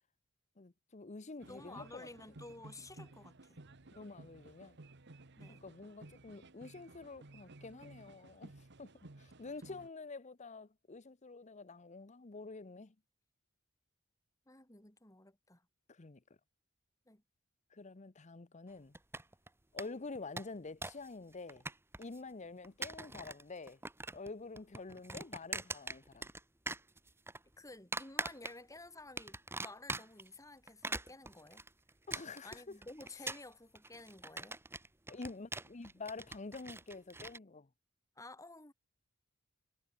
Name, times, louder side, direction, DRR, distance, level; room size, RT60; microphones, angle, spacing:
voice 1, 0.6-2.1 3.9-4.8 5.5-8.5 8.8-8.9 9.2-12.9 15.9-16.2 17.7-18.9 19.7-21.6 22.0-23.8 24.1-26.3 32.1-32.8 35.1-37.7, left 3 dB, 35° left, 0.8 m, -48 dB
voice 2, 1.4-3.6 5.4-5.6 9.7-9.8 14.5-15.6 17.1-17.2 27.6-31.6 32.4-34.6 38.2-38.7, left 2 dB, 15° left, 4.2 m, -53 dB
sound 1, 1.4-9.9, right 2 dB, 55° right, 1.3 m, -56 dB
sound 2, 18.9-19.5 19.8-19.9 20.2-21.1 21.3-22.2 22.6-23.4 23.7-24.3 24.6-26.4 26.7-27.4 27.9-28.8 29.2-30.3 30.7-37.4, right 2 dB, 10° right, 1.9 m, -42 dB
head